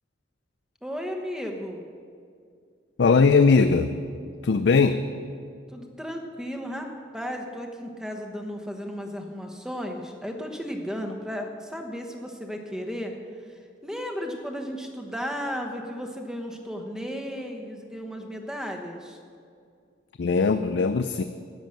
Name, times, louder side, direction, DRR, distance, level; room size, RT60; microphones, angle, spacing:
voice 1, 0.8-1.8 5.7-13.1 13.5-19.2, equal, 5° right, 3 dB, 1.1 m, -34 dB
voice 2, 3.0-3.9 4.4-5.0 20.2-21.2, left 4 dB, 75° left, 9 dB, 0.4 m, -19 dB
13.0 x 9.1 x 6.5 m, 2.3 s
head